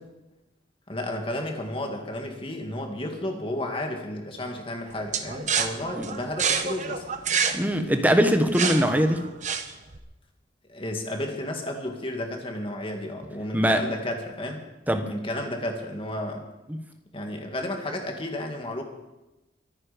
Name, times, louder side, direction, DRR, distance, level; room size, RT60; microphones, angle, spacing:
voice 1, 0.9-7.0 10.7-14.6 15.1-16.4 17.1-18.8, left 1 dB, 30° left, 3 dB, 2.3 m, -32 dB
sound 1, 5.1-10.0, right 6 dB, 40° right, 1.1 m, -28 dB
voice 2, 7.5-9.3 13.5-13.8 14.9-15.1, equal, 10° right, 6 dB, 1.2 m, -21 dB
24.0 x 9.8 x 5.3 m, 1.0 s
head